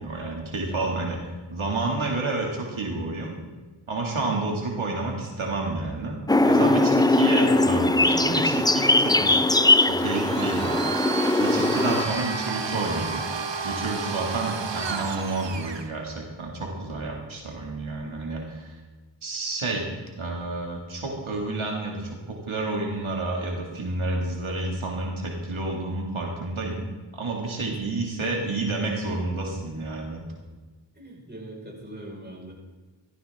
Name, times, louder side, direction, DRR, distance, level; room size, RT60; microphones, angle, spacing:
voice 1, 0.0-3.3 3.9-6.2 6.4-9.3 9.9-10.8 11.4-13.2 13.6-18.8 19.2-19.9 20.2-26.8 27.1-30.3, right 2 dB, 90° right, -1 dB, 2.3 m, -30 dB
sound 1, 6.3-12.0, left 2 dB, 10° left, 0.4 m, -20 dB
Domestic sounds home sounds, 10.0-15.9, right 5 dB, 65° right, 1.1 m, -31 dB
voice 2, 30.9-32.5, right 1 dB, 20° right, -2 dB, 4.7 m, -42 dB
16.0 x 13.5 x 3.6 m, 1.3 s
wide cardioid pair, 45°, 47 cm